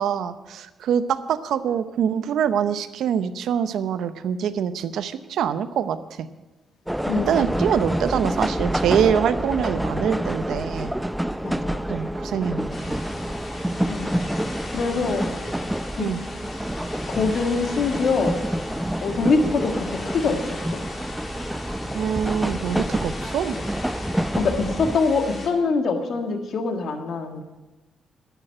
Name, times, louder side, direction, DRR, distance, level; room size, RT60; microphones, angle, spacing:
voice 1, 0.0-6.3 7.3-10.9 11.9-13.0 16.0-16.2 21.9-23.5, right 8 dB, 80° right, 12 dB, 0.7 m, -25 dB
sound 1, 6.9-25.0, right 1 dB, 5° right, 0.5 m, -28 dB
voice 2, 7.1-7.4 11.4-11.8 13.9-14.2 14.7-15.2 16.0-16.1 17.1-18.3 19.0-20.8 24.4-27.4, left 4 dB, 65° left, 5 dB, 1.7 m, -24 dB
sound 2, 12.7-25.5, left 1 dB, 45° left, 3.0 m, -37 dB
12.0 x 9.1 x 7.6 m, 1.1 s
cardioid pair, 70°, 0 cm